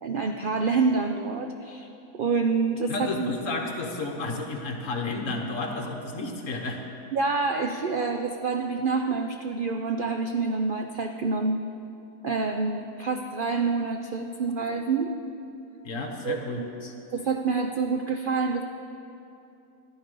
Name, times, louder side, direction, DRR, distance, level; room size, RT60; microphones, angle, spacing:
voice 1, 0.0-1.9 2.1-3.3 7.1-11.6 12.2-15.1 16.2-18.6, right 4 dB, 65° right, 5 dB, 0.5 m, -27 dB
voice 2, 2.9-6.8 15.8-16.6, left 2 dB, 55° left, 2 dB, 1.6 m, -32 dB
13.5 x 11.0 x 5.4 m, 2.8 s
omnidirectional pair, 1.6 m